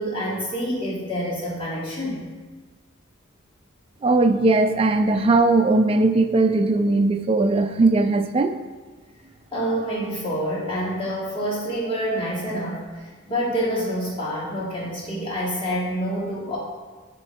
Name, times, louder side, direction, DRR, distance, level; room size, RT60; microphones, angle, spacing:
voice 1, 0.0-2.2 9.5-12.8 13.3-16.6, equal, 25° left, -7 dB, 1.9 m, -27 dB
voice 2, 4.0-8.6, right 2 dB, 30° right, 7 dB, 0.3 m, -19 dB
8.5 x 3.0 x 4.7 m, 1.3 s
head